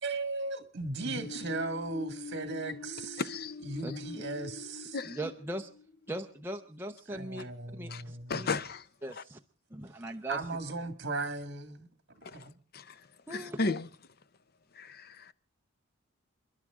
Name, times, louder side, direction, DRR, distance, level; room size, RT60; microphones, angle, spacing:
voice 1, 0.0-3.2 3.6-5.0 7.1-8.5 10.3-12.5, right 3 dB, 50° right, 1.9 m, -37 dB
sound 1, 0.9-6.6, left 4 dB, 70° left, 2.3 m, -45 dB
voice 2, 3.2-3.6 3.9-4.0 4.9-5.2 7.9-8.0 8.3-8.8 9.2-9.3 12.2-12.5 12.7-13.0 13.3-13.9 14.8-15.3, left 3 dB, 45° left, 0.6 m, -34 dB
voice 3, 5.0-5.7 6.1-8.6 9.0-9.4 9.7-10.4 13.3-13.6, right 1 dB, 10° right, 0.7 m, -39 dB
29.0 x 11.5 x 3.7 m
head